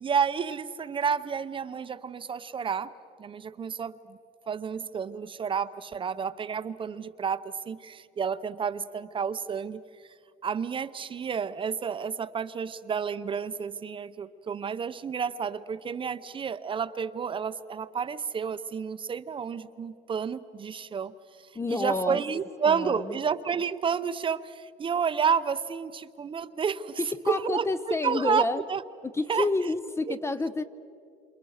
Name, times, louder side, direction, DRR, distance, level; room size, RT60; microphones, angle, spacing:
voice 1, 0.0-2.9 3.2-4.2 4.5-9.8 10.4-21.1 21.7-27.0 27.3-28.8 29.3-29.5 30.1-30.2, right 6 dB, 25° right, 12 dB, 0.7 m, -30 dB
voice 2, 21.5-22.2 22.7-23.2 27.0-28.6 29.0-30.6, left 3 dB, 15° left, 12 dB, 0.6 m, -29 dB
28.0 x 27.5 x 6.5 m, 2.4 s
cardioid pair, 140°, 19 cm